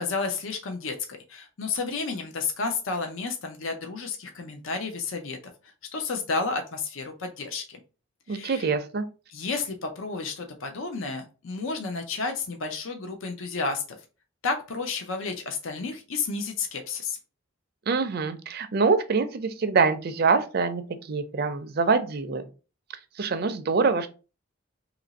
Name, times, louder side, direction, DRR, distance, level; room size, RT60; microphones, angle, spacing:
voice 1, 0.0-5.4 5.6-7.8 8.3-8.7 9.3-14.0 14.4-17.2, left 4 dB, 70° left, 5 dB, 0.6 m, -31 dB
voice 2, 8.3-9.0 17.9-20.8 21.1-22.5 23.2-24.1, right 4 dB, 45° right, 9 dB, 0.4 m, -24 dB
2.9 x 2.5 x 3.9 m, 0.33 s
head